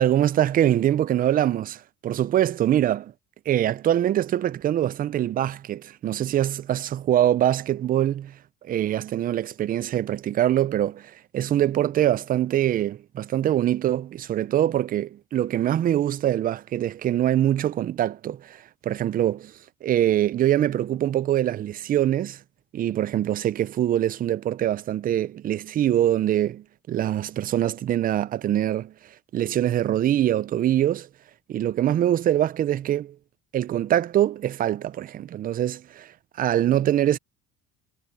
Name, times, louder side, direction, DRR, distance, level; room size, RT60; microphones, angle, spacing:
voice 1, 0.0-3.1 3.5-8.4 8.6-19.5 19.8-22.4 22.7-28.9 29.3-31.1 31.5-33.2 33.5-37.2, right 12 dB, 30° right, 0.4 m, -24 dB
cardioid pair, 145°, 30 cm